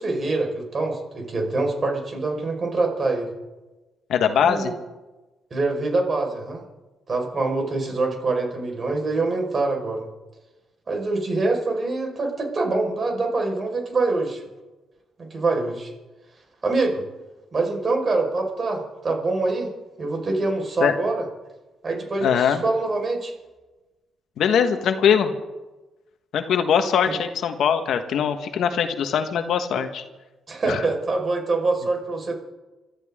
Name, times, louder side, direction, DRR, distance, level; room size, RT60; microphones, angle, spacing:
voice 1, 0.0-3.3 4.4-4.7 5.5-6.6 7.1-10.0 10.9-14.4 15.2-15.9 16.6-17.0 17.5-19.7 20.0-21.2 21.8-23.3 30.5-32.4, right 3 dB, 40° right, 1 dB, 5.0 m, -25 dB
voice 2, 4.1-4.7 20.8-20.9 22.2-22.6 24.4-25.3 26.3-30.0 30.7-30.8, left 7 dB, 70° left, 7 dB, 1.4 m, -21 dB
27.5 x 13.0 x 3.7 m, 1.1 s
cardioid pair, 90°, 0 cm